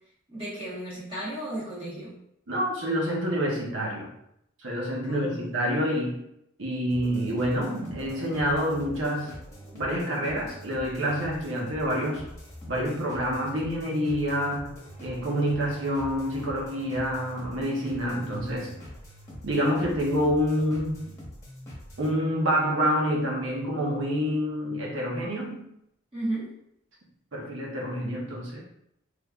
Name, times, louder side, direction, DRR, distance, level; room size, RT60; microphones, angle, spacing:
voice 1, 0.3-2.1 5.0-5.5 26.1-26.5, right 1 dB, 25° right, -10 dB, 1.3 m, -34 dB
voice 2, 2.5-4.1 4.6-6.2 6.6-9.4 9.7-12.3 12.7-14.7 15.0-18.8 19.4-21.1 22.0-25.6 27.3-28.6, equal, 70° right, -2 dB, 0.8 m, -27 dB
sound 1, 6.9-22.1, equal, 15° left, 1.0 m, -44 dB
3.4 x 3.1 x 2.4 m, 0.77 s
head